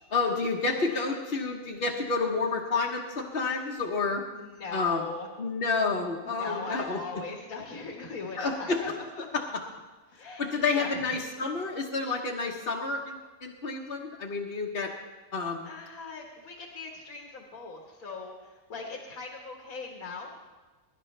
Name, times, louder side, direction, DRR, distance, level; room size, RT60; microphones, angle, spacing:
voice 1, 0.1-4.2 4.7-5.0 5.4-7.0 8.4-8.9 9.3-9.6 10.4-14.9 15.3-15.7, left 4 dB, 45° left, -2 dB, 1.2 m, -29 dB
voice 2, 4.3-5.3 6.2-8.9 9.2-9.4 10.1-11.1 15.7-20.4, left 4 dB, 80° left, 0 dB, 1.9 m, -40 dB
22.0 x 11.5 x 3.3 m, 1.2 s
omnidirectional pair, 1.5 m